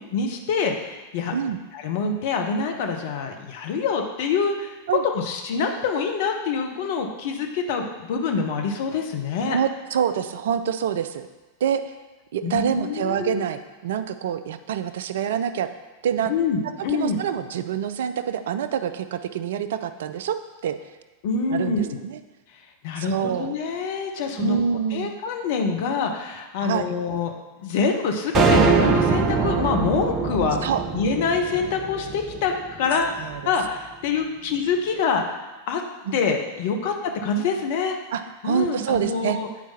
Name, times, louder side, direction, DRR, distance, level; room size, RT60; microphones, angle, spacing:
voice 1, 0.1-1.3 1.7-4.8 5.1-9.6 12.4-13.4 16.3-17.2 21.2-22.0 22.8-24.6 24.9-27.3 27.6-35.4 35.7-35.8 36.1-38.0 38.4-39.5, left 5 dB, 50° left, 3 dB, 0.8 m, -25 dB
voice 2, 9.5-11.3 11.6-11.9 12.3-15.7 16.0-16.3 16.9-20.4 20.6-20.8 21.5-22.2 23.0-23.6 24.4-25.1 26.6-26.8 30.6-30.8 33.2-33.5 36.1-36.2 38.1-39.4, right 8 dB, 60° right, 11 dB, 0.3 m, -26 dB
sound 1, 28.3-32.8, right 5 dB, 30° right, 0.7 m, -22 dB
9.2 x 4.5 x 2.8 m, 1.2 s
figure-of-eight pair, 90°, 0 cm